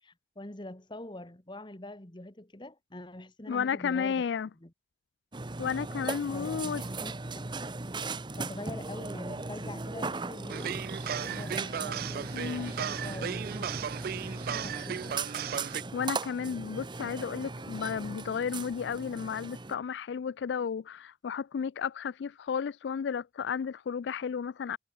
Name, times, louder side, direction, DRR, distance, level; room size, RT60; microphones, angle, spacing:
voice 1, 0.0-4.3 4.6-4.7 6.3-7.5 8.4-15.2, left 1 dB, 25° left, 1.8 m, -45 dB
voice 2, 3.5-4.5 5.6-6.8 12.3-12.7 15.9-24.8, left 6 dB, 85° left, 0.4 m, -33 dB
Burping eructation, 5.3-19.7, right 3 dB, 25° right, 0.9 m, -38 dB
sound 1, 10.5-15.8, right 8 dB, 55° right, 0.3 m, -36 dB
head